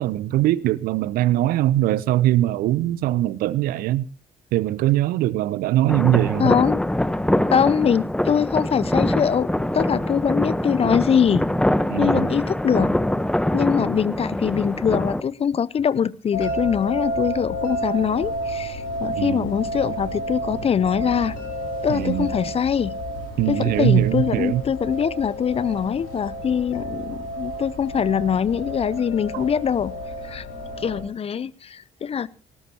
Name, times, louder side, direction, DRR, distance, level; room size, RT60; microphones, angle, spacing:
voice 1, 0.0-4.1 4.5-6.5 11.9-12.3 19.2-19.5 21.9-22.3 23.4-24.6 29.3-29.4, right 14 dB, 60° right, 0.7 m, -21 dB
sound 1, 5.9-15.2, left 1 dB, 5° left, 1.1 m, -24 dB
voice 2, 6.4-6.8 7.5-9.5 9.7-11.4 12.0-12.9 13.5-21.3 21.8-23.0 23.5-29.9 30.2-30.5 30.8-32.3, left 7 dB, 35° left, 0.7 m, -23 dB
sound 2, 16.3-31.0, equal, 60° left, 5.1 m, -31 dB
20.0 x 18.5 x 3.0 m
figure-of-eight pair, 50°, 17 cm